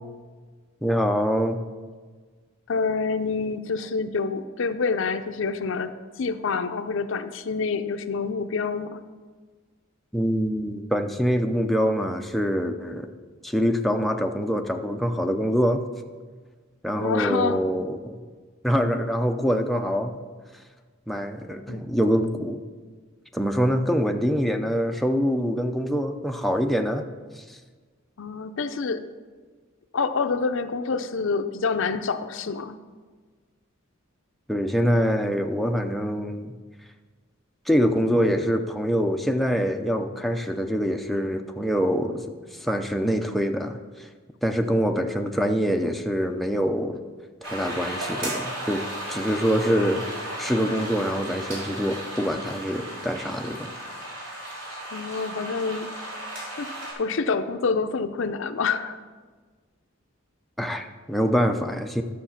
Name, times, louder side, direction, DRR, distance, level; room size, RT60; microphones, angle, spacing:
voice 1, 0.8-1.6 10.1-13.1 13.4-15.8 16.8-18.2 18.6-20.2 21.1-22.6 23.3-27.1 34.5-36.5 37.7-42.2 42.6-43.8 44.4-47.0 47.4-50.0 50.4-53.7 60.6-62.0, equal, ahead, 4 dB, 0.5 m, -24 dB
voice 2, 2.7-9.1 16.9-17.6 21.7-21.8 28.2-29.0 29.9-32.8 54.9-55.9 56.6-56.7 57.0-59.0, left 4 dB, 65° left, 10 dB, 0.5 m, -27 dB
sound 1, 47.4-56.9, right 1 dB, 65° right, 3.7 m, -35 dB
11.5 x 6.5 x 5.7 m, 1.5 s
head